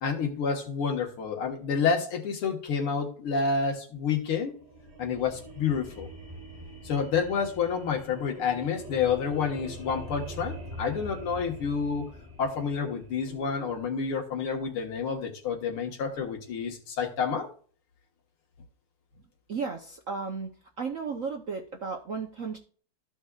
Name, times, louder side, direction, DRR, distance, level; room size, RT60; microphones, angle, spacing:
voice 1, 0.0-4.5 5.0-6.1 6.8-12.1 12.4-17.5, left 6 dB, 75° left, 2 dB, 2.4 m, -29 dB
sound 1, 4.4-13.8, equal, 15° right, 2.7 m, -44 dB
voice 2, 19.5-20.5 20.8-22.6, right 5 dB, 55° right, 2 dB, 0.9 m, -34 dB
14.0 x 5.3 x 2.4 m, 0.44 s
omnidirectional pair, 2.4 m